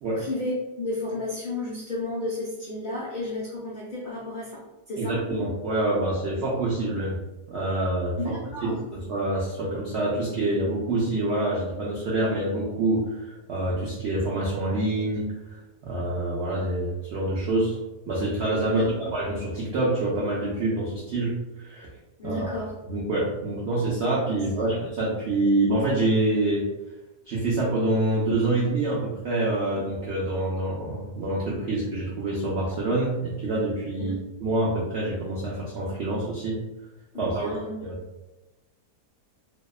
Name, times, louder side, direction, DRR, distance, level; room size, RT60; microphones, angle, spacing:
voice 1, 0.2-4.6 4.9-5.2 8.2-8.8 18.7-19.0 22.2-22.7 24.5-24.7 34.0-34.2 37.1-37.8, left 2 dB, 85° left, -8 dB, 0.4 m, -32 dB
voice 2, 4.9-7.2 7.5-8.3 8.6-15.2 15.8-17.8 18.1-21.3 21.6-21.9 22.2-22.6 22.9-26.6 27.3-34.1 34.4-36.6 37.2-37.5 37.8-38.0, right 2 dB, 90° right, -5 dB, 0.5 m, -26 dB
2.7 x 2.2 x 2.3 m, 1.0 s
omnidirectional pair, 1.7 m